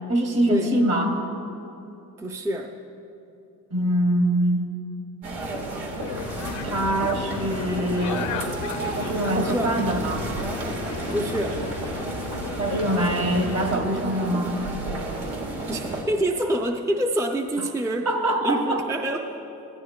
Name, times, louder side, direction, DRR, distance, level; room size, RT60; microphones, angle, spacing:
voice 1, 0.1-1.2 3.7-4.6 6.6-8.2 8.9-10.2 12.6-14.6 18.1-18.8, right 1 dB, 60° right, 2 dB, 1.7 m, -24 dB
voice 2, 2.2-2.8 9.4-9.8 11.1-11.6 15.7-18.1 18.4-19.4, right 1 dB, 10° right, 3 dB, 0.5 m, -26 dB
sound 1, 5.2-16.0, right 2 dB, 85° right, 1.7 m, -32 dB
sound 2, 6.0-14.0, left 7 dB, 70° left, 0.6 m, -35 dB
16.0 x 11.5 x 2.2 m, 2.9 s
cardioid pair, 90°, 30 cm